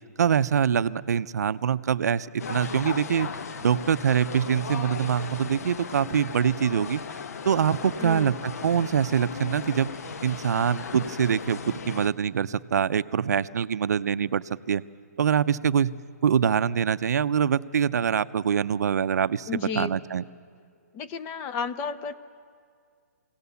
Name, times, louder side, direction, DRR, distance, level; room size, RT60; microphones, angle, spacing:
voice 1, 0.2-3.3 3.6-7.0 7.5-9.9 10.2-14.8 15.2-15.9 16.2-20.2, right 8 dB, 70° right, 14 dB, 0.6 m, -24 dB
sound 1, 2.4-12.1, left 5 dB, 65° left, 1.0 m, -37 dB
voice 2, 8.0-8.3 19.5-19.9 20.9-22.1, left 6 dB, 20° left, 12 dB, 0.6 m, -32 dB
26.0 x 17.5 x 7.0 m, 2.2 s
hypercardioid pair, 160°, 9 cm